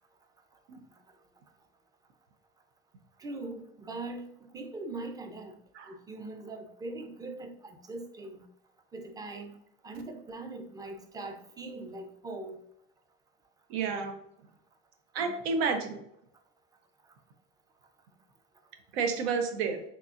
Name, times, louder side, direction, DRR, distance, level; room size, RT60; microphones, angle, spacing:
voice 1, 3.2-5.6 5.9-8.5 8.9-9.6 9.8-12.6, right 2 dB, 15° right, 5 dB, 0.4 m, -41 dB
voice 2, 13.7-14.1 15.1-16.0 18.9-19.8, right 5 dB, 85° right, 6 dB, 0.7 m, -30 dB
3.7 x 2.9 x 2.4 m, 0.77 s
supercardioid pair, 110°, 30 cm